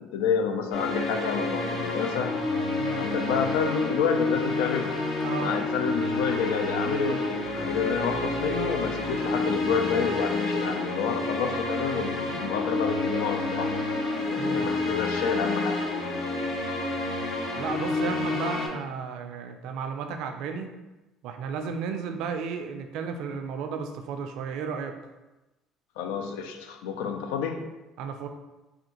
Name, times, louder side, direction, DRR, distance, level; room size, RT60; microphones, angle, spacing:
voice 1, 0.0-2.4 2.9-5.0 5.4-13.7 14.3-15.8 26.0-27.7, left 6 dB, 80° left, 6 dB, 0.3 m, -29 dB
sound 1, 0.7-18.7, left 2 dB, 60° left, 0.7 m, -29 dB
voice 2, 5.2-5.6 14.4-14.7 17.6-20.7 21.2-25.0 28.0-28.3, right 6 dB, 70° right, 6 dB, 0.3 m, -33 dB
3.4 x 2.3 x 2.9 m, 1.1 s
hypercardioid pair, 70°, 0 cm